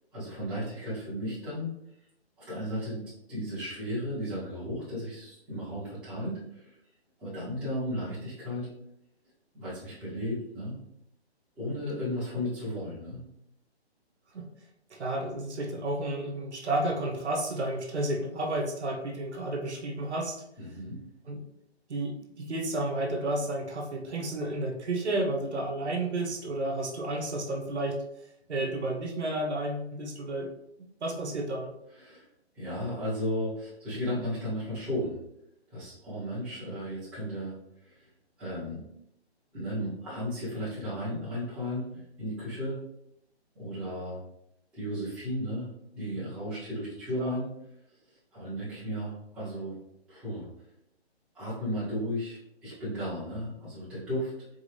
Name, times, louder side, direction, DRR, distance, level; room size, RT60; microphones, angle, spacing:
voice 1, 0.1-1.8 2.4-3.0 3.3-6.8 7.2-8.7 9.5-10.8 11.6-13.2 20.6-21.0 31.9-32.2 32.5-35.2 35.7-37.6 37.8-38.0 38.4-38.8 39.5-42.8 43.5-44.2 44.7-45.7 45.9-47.5 48.3-49.7 50.1-50.5 51.3-54.3, equal, 5° right, -12 dB, 0.8 m, -34 dB
voice 2, 14.9-20.4 21.3-21.4 21.9-28.0 28.5-30.5 31.0-31.7 47.2-47.4, right 1 dB, 80° right, 2 dB, 1.2 m, -31 dB
4.4 x 2.8 x 3.3 m, 0.80 s
hypercardioid pair, 160°, 33 cm